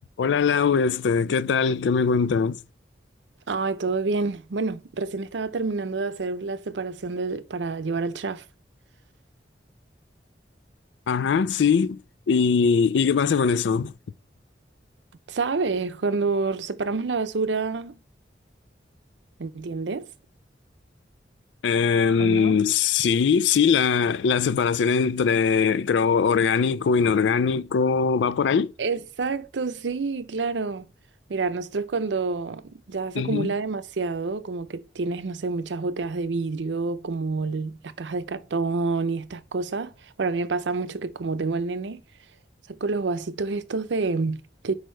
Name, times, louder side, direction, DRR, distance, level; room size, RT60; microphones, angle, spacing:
voice 1, 0.2-2.6 11.1-12.0 12.3-13.9 21.6-28.7 33.2-33.5, left 6 dB, 85° left, 0.4 m, -21 dB
voice 2, 3.5-8.4 15.3-18.0 19.4-20.1 22.2-22.6 28.8-30.9 31.3-42.0 42.7-44.7, right 4 dB, 85° right, 0.6 m, -28 dB
6.4 x 5.0 x 4.5 m
head